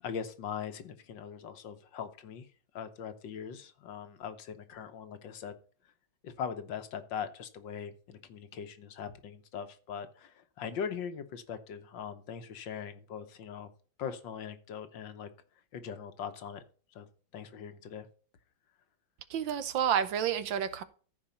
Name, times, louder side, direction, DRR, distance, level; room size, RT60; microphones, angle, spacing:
voice 1, 0.0-2.5 2.7-5.6 6.2-13.7 14.0-15.3 15.7-16.6 16.9-17.1 17.3-18.1, left 7 dB, 70° left, 1.7 m, -41 dB
voice 2, 19.3-20.8, right 8 dB, 75° right, 1.6 m, -29 dB
14.0 x 4.8 x 5.7 m
omnidirectional pair, 2.2 m